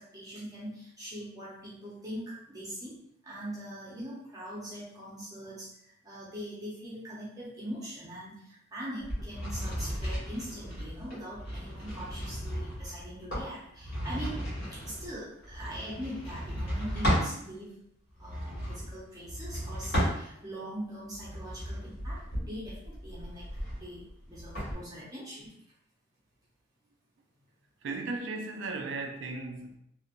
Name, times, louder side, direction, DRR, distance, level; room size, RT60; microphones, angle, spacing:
voice 1, 0.0-3.0 3.2-14.4 14.7-17.8 18.2-25.5, equal, 20° right, 0.6 m, -42 dB
sound 1, 9.0-17.4 18.2-20.6 21.1-24.7, equal, 55° left, 1.4 m, -35 dB
voice 2, 27.8-29.8, right 3 dB, 65° right, 0.4 m, -36 dB
2.8 x 2.1 x 2.5 m
head